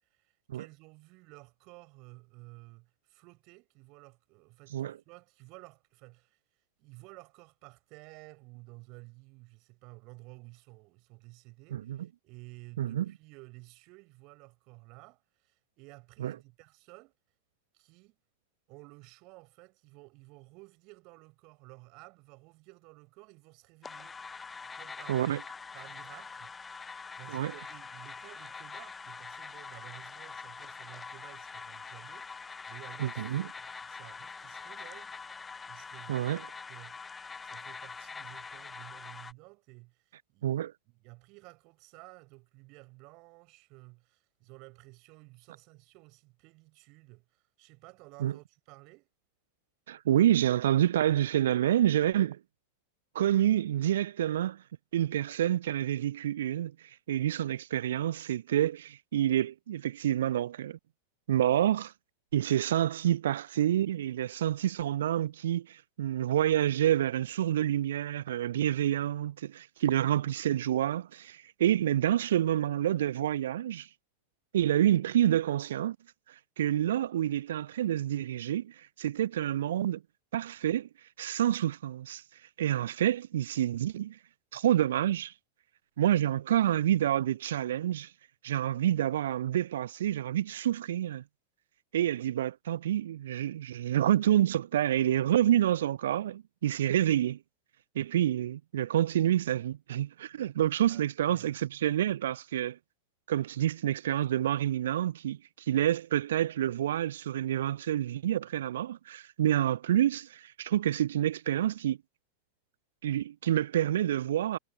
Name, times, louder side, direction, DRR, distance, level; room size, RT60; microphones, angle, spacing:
voice 1, 0.1-6.4 6.8-17.1 17.7-18.2 18.7-24.2 24.7-25.4 25.7-26.5 27.2-35.1 35.7-36.3 36.7-40.6 40.9-49.1 100.9-101.7, right 26 dB, 40° right, 5.9 m, -53 dB
sound 1, 23.8-39.3, left 5 dB, 15° left, 0.3 m, -44 dB
voice 2, 25.1-25.4 27.3-27.5 33.0-33.5 36.1-36.4 40.4-40.7 48.2-48.3 49.9-52.4 53.1-54.6 54.9-56.7 57.1-60.8 61.3-61.9 62.3-73.9 74.5-76.0 76.6-78.7 79.0-80.0 80.3-80.9 81.2-82.2 82.6-84.2 84.5-85.3 86.0-88.1 88.4-91.2 91.9-97.4 98.0-102.8 103.3-105.4 105.7-112.0 113.0-114.6, right 11 dB, 60° right, 0.4 m, -28 dB
figure-of-eight pair, 90°, 0 cm